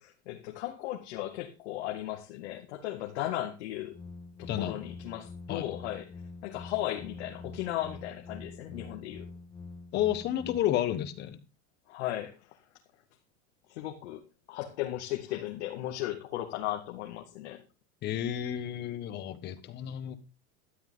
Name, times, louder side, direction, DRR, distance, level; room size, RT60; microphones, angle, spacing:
voice 1, 0.0-4.0 4.4-6.1 6.4-9.3 11.9-12.6 13.7-14.2 14.5-17.6, left 14 dB, 85° left, 2.3 m, -36 dB
sound 1, 3.9-10.6, left 3 dB, 15° left, 1.6 m, -45 dB
voice 2, 4.5-4.8 5.5-5.7 9.9-11.4 18.0-20.2, left 11 dB, 30° left, 1.3 m, -31 dB
13.0 x 10.5 x 3.8 m
supercardioid pair, 170°, 33 cm